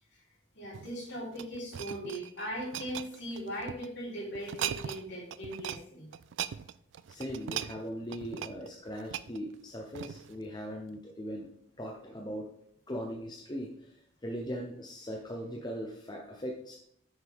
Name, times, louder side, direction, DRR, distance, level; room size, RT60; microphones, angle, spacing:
voice 1, 0.6-6.1, equal, 55° left, -4 dB, 3.3 m, -39 dB
sound 1, 0.6-3.9 4.4-5.1 5.3-5.8 6.1-10.4 11.0-11.1, right 10 dB, 60° right, 0.3 m, -39 dB
voice 2, 7.1-11.5 11.8-12.5 12.9-16.8, equal, 20° left, 1 dB, 0.7 m, -39 dB
9.2 x 6.5 x 3.5 m, 0.70 s
head